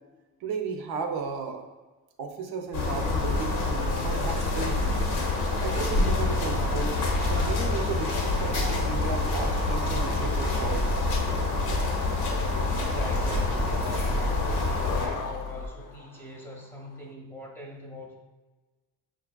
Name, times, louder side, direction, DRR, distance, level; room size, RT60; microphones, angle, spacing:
voice 1, 0.4-1.7 2.2-4.8 5.5-11.0, right 5 dB, 85° right, 4 dB, 0.6 m, -35 dB
sound 1, 2.7-15.1, left 3 dB, 85° left, 0.9 m, -27 dB
sound 2, 6.8-15.7, right 1 dB, 40° right, 0.4 m, -35 dB
voice 2, 12.8-18.1, left 1 dB, 5° left, -1 dB, 0.6 m, -41 dB
Skateboard, 12.9-17.1, left 5 dB, 60° left, 0.5 m, -41 dB
6.3 x 2.4 x 2.3 m, 1.2 s
cardioid pair, 115°, 37 cm